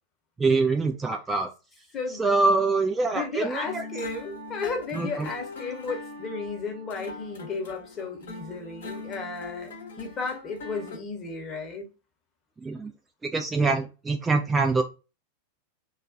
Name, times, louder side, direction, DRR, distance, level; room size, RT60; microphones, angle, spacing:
voice 1, 0.4-1.5 2.2-3.8 4.9-5.3 12.6-12.9 13.2-14.8, right 3 dB, 15° right, 0.4 m, -24 dB
voice 2, 1.9-2.2 3.1-11.9, left 4 dB, 25° left, 0.8 m, -34 dB
sound 1, 3.6-11.0, left 3 dB, 65° left, 0.7 m, -41 dB
2.3 x 2.2 x 2.5 m
figure-of-eight pair, 90°, 0 cm